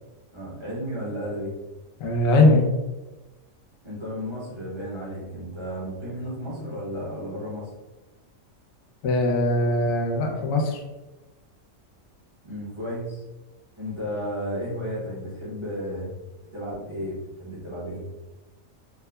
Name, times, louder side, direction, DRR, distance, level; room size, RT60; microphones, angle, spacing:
voice 1, 0.3-1.5 3.8-7.7 12.4-13.2 13.8-16.1 16.5-18.0, equal, 25° right, -7 dB, 0.9 m, -33 dB
voice 2, 2.0-2.7 9.0-10.8, left 2 dB, 80° left, 0 dB, 1.0 m, -20 dB
4.7 x 2.1 x 2.2 m, 1.1 s
omnidirectional pair, 1.4 m